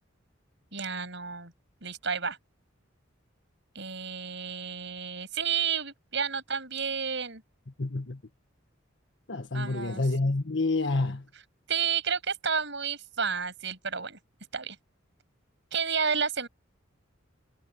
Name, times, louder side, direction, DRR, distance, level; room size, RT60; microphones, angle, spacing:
voice 1, 0.7-1.5 1.8-2.4 3.7-7.4 9.5-10.0 11.7-14.2 14.5-14.8 15.7-16.5, right 6 dB, 60° right, 7.8 m, -31 dB
voice 2, 7.8-8.2 9.3-11.3, left 2 dB, 65° left, 1.6 m, -28 dB
head